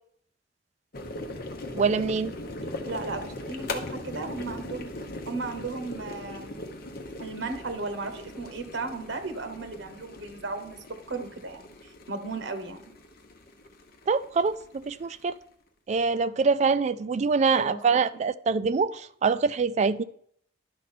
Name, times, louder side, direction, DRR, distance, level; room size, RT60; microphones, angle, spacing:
sound 1, 0.9-15.4, left 2 dB, 55° left, 0.9 m, -40 dB
voice 1, 1.7-2.3 14.1-15.4 15.9-20.0, right 5 dB, 40° right, 0.3 m, -25 dB
voice 2, 2.8-4.9 5.3-6.5 7.2-12.8 17.5-18.0, right 3 dB, 90° right, 1.1 m, -35 dB
11.5 x 5.1 x 4.2 m
head